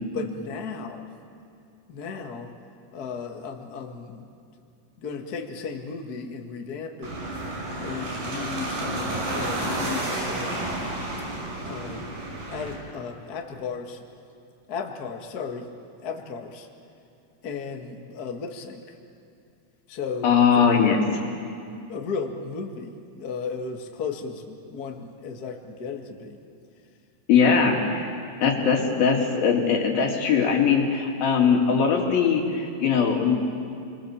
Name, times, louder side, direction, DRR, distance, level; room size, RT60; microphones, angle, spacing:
voice 1, 0.1-1.1 1.9-2.5 2.9-4.3 5.0-7.1 7.8-10.5 11.6-12.1 12.5-14.1 14.7-15.7 16.0-16.7 17.4-19.0 19.9-21.0 21.9-26.4, left 5 dB, 40° left, 2 dB, 1.5 m, -35 dB
sound 1, 7.0-12.7, right 1 dB, 90° right, 7.6 m, -31 dB
voice 2, 20.2-21.0 27.3-28.1 28.4-33.4, left 6 dB, 90° left, 0 dB, 4.5 m, -20 dB
29.0 x 22.5 x 7.3 m, 2.5 s
omnidirectional pair, 4.1 m